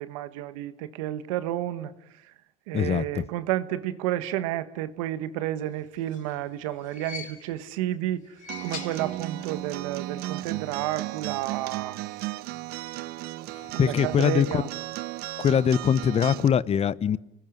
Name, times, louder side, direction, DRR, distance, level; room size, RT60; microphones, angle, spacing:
voice 1, 0.0-1.9 2.7-12.0 13.7-14.7, right 13 dB, 85° right, 1.5 m, -31 dB
voice 2, 2.7-3.2 13.6-14.6 15.4-17.2, left 8 dB, 40° left, 1.0 m, -23 dB
sound 1, 5.8-7.8 8.2-9.7 9.9-10.0 11.1-11.2, left 6 dB, 55° left, 4.4 m, -43 dB
Acoustic guitar, 8.5-16.5, right 17 dB, 70° right, 1.0 m, -35 dB
30.0 x 20.0 x 9.7 m
supercardioid pair, 85°, 17 cm